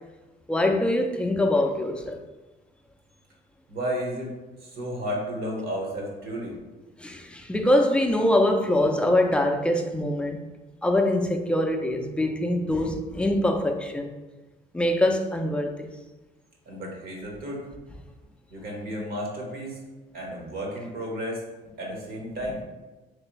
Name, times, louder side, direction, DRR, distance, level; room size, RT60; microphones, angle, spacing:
voice 1, 0.5-2.2 7.0-10.4 10.8-14.1 14.7-15.9, left 1 dB, 5° left, 0.4 m, -23 dB
voice 2, 3.7-4.3 4.6-6.5 16.6-17.7 18.5-19.8 20.1-21.4 21.8-22.6, equal, 65° right, 1.3 m, -32 dB
3.4 x 3.3 x 3.0 m
cardioid pair, 110°, 17 cm